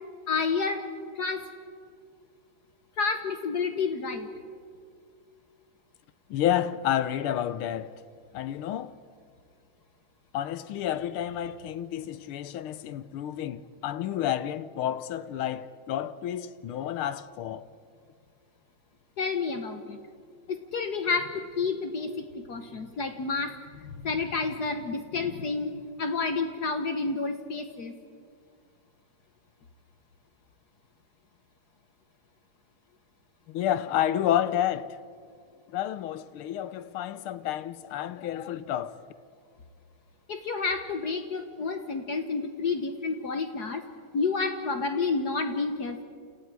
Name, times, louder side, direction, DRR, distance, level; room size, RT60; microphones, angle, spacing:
voice 1, 0.3-0.8 1.1-1.5 3.0-4.3 19.2-20.0 20.5-27.9 40.3-43.8 44.1-46.0, left 4 dB, 55° left, 1.5 m, -30 dB
voice 2, 6.3-8.0 8.3-8.9 10.3-17.7 33.5-35.0 35.7-39.0, left 11 dB, 85° left, 1.7 m, -30 dB
29.0 x 29.0 x 4.8 m
omnidirectional pair, 2.4 m